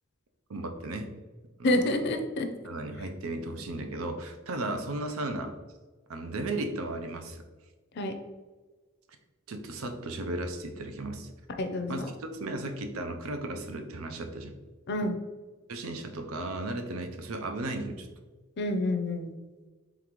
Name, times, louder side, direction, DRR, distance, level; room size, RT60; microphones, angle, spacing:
voice 1, 0.5-1.1 1.6-2.0 2.6-5.5 6.1-7.4 9.5-11.3 11.9-14.5 15.7-18.1, right 2 dB, 90° right, 5 dB, 0.6 m, -35 dB
voice 2, 1.6-2.5 8.0-8.1 11.6-12.0 14.9-15.2 18.6-19.3, left 1 dB, 55° left, 6 dB, 0.5 m, -28 dB
3.8 x 3.7 x 3.0 m, 1.3 s
head